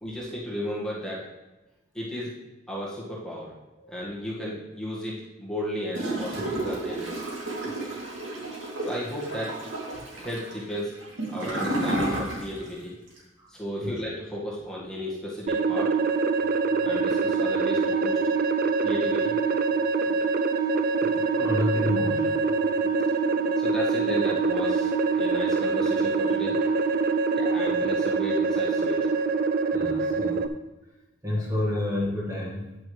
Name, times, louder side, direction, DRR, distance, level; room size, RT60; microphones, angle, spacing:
voice 1, 0.0-1.3 1.9-2.3 2.7-3.5 3.9-7.3 8.9-9.6 10.1-11.0 11.3-12.9 13.5-16.0 16.8-18.2 18.8-19.3 20.0-20.2 22.8-26.7 27.0-27.1 27.4-29.1, equal, 5° left, -7 dB, 2.0 m, -34 dB
Gurgling / Toilet flush, 5.9-12.8 13.1-13.2, right 1 dB, 80° right, 2.6 m, -31 dB
sound 1, 15.5-30.5, right 4 dB, 50° right, 0.5 m, -24 dB
voice 2, 21.4-22.3 29.7-30.4 31.2-32.8, left 1 dB, 20° right, -5 dB, 1.9 m, -29 dB
9.6 x 9.0 x 3.4 m, 1.1 s
head